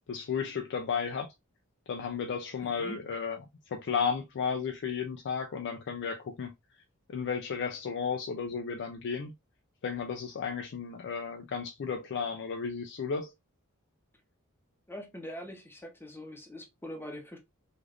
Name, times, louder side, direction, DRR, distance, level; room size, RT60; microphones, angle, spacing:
voice 1, 0.1-1.3 1.9-3.4 3.7-6.5 7.1-9.3 9.8-13.3, left 6 dB, 55° left, 0.4 m, -33 dB
voice 2, 2.6-3.1 14.9-17.4, equal, 10° left, 0.7 m, -43 dB
3.3 x 2.5 x 2.4 m
head